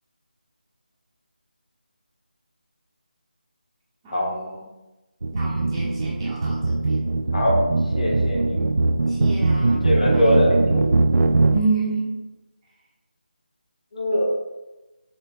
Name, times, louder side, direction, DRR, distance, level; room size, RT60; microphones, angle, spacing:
voice 1, 4.0-4.6 5.3-7.1 9.1-10.4 11.5-12.1, right 3 dB, 10° right, -10 dB, 0.5 m, -29 dB
sound 1, 5.2-11.6, right 3 dB, 75° right, 0.3 m, -21 dB
voice 2, 7.9-8.7 9.8-10.8 13.9-14.3, equal, 45° left, -3 dB, 1.3 m, -22 dB
6.4 x 2.2 x 3.4 m, 1.0 s
figure-of-eight pair, 165°, 5 cm